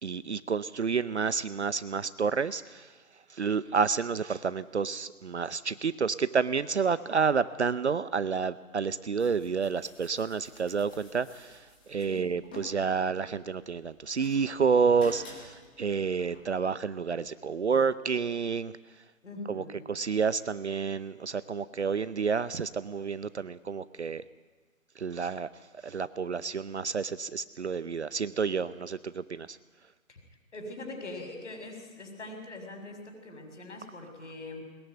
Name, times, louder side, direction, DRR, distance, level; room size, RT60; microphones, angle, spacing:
voice 1, 0.0-2.9 3.3-11.6 11.9-18.7 19.5-24.2 25.0-25.5 25.8-29.6, right 5 dB, 55° right, 15 dB, 0.8 m, -29 dB
sound 1, 9.2-16.6, left 2 dB, 5° left, 1.1 m, -52 dB
voice 2, 19.2-19.8 30.1-30.2 30.5-34.6, left 2 dB, 55° left, 5 dB, 7.1 m, -42 dB
21.5 x 21.5 x 9.3 m, 1.4 s
hypercardioid pair, 175°, 42 cm